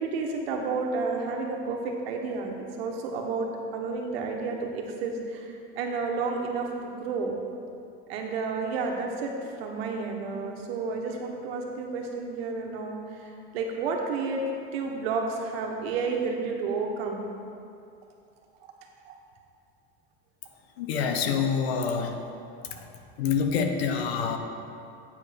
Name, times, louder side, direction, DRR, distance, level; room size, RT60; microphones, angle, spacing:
voice 1, 0.0-7.3 8.1-14.4 14.7-17.2 19.0-19.1 22.7-22.8, right 4 dB, 75° right, 1 dB, 1.4 m, -31 dB
voice 2, 20.8-22.2 22.7-22.8 23.2-24.4, left 6 dB, 85° left, 6 dB, 1.0 m, -26 dB
8.5 x 5.3 x 5.9 m, 2.5 s
supercardioid pair, 150°, 31 cm